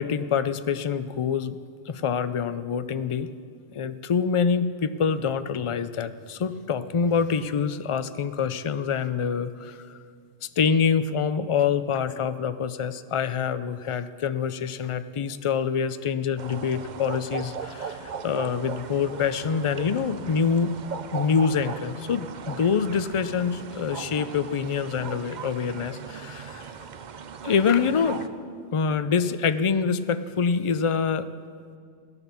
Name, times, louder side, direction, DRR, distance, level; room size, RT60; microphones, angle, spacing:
voice 1, 0.0-1.6 1.9-3.3 3.7-10.0 10.6-20.7 21.1-26.7 27.4-28.2 28.7-31.3, left 6 dB, 50° left, 12 dB, 0.3 m, -26 dB
sound 1, 16.4-28.3, right 6 dB, 50° right, 0.6 m, -38 dB
16.5 x 11.0 x 7.1 m, 2.1 s
omnidirectional pair, 1.2 m